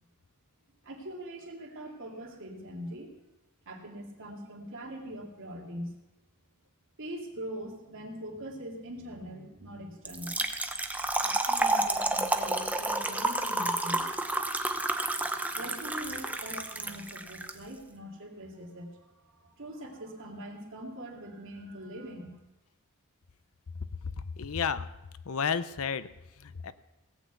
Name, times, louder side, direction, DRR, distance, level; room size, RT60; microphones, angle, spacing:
voice 1, 0.8-3.1 3.7-5.9 7.0-10.4 11.2-14.1 15.5-22.4, equal, 60° right, 0 dB, 2.7 m, -42 dB
Trickle dribble / Fill (with liquid), 10.0-17.5, right 2 dB, 5° right, 0.8 m, -30 dB
voice 2, 24.4-24.9 25.3-26.1 26.4-26.7, left 6 dB, 70° left, 14 dB, 0.6 m, -31 dB
17.5 x 6.1 x 8.1 m, 0.98 s
head